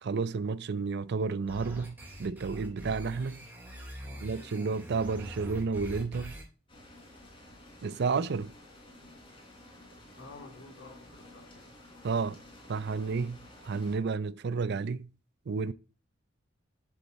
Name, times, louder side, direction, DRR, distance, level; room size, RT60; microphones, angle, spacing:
voice 1, 0.0-3.4 4.2-6.4 7.8-8.5 12.0-12.4 12.7-13.4 13.6-15.1 15.5-15.7, right 4 dB, 60° right, 0.5 m, -31 dB
sound 1, 1.5-6.4, equal, 10° right, 3.6 m, -44 dB
voice 2, 4.0-4.5 9.0-9.1 10.1-11.7, left 2 dB, 65° left, 2.8 m, -51 dB
sound 2, 6.7-14.0, left 1 dB, 30° left, 3.6 m, -53 dB
7.5 x 7.1 x 4.1 m
head